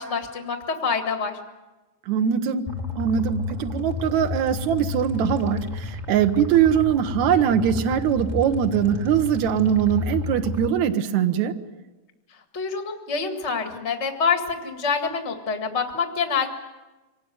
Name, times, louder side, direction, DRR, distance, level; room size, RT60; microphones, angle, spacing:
voice 1, 0.0-1.4 12.5-16.5, left 5 dB, 70° left, 4 dB, 0.6 m, -26 dB
voice 2, 2.1-2.7 3.0-11.6, right 9 dB, 70° right, 6 dB, 1.8 m, -22 dB
sound 1, 2.7-10.7, left 4 dB, 30° right, 0.7 m, -31 dB
24.5 x 18.5 x 9.5 m, 1.1 s
omnidirectional pair, 4.8 m